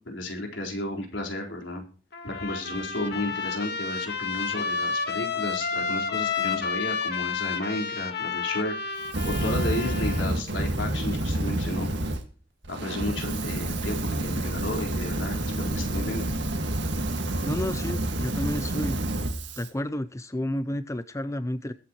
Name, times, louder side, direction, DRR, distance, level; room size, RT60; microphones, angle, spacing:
voice 1, 0.0-1.8 2.2-8.7 9.2-11.9 12.7-16.3, left 1 dB, 90° left, 1 dB, 4.3 m, -33 dB
Trumpet, 2.1-10.3, left 5 dB, 60° left, 2.0 m, -31 dB
Fire, 9.0-12.2 12.6-19.7, right 1 dB, 70° right, 1.8 m, -29 dB
voice 2, 17.4-19.0 19.6-21.7, left 1 dB, 15° left, 12 dB, 0.5 m, -31 dB
22.0 x 8.7 x 3.0 m, 0.38 s
head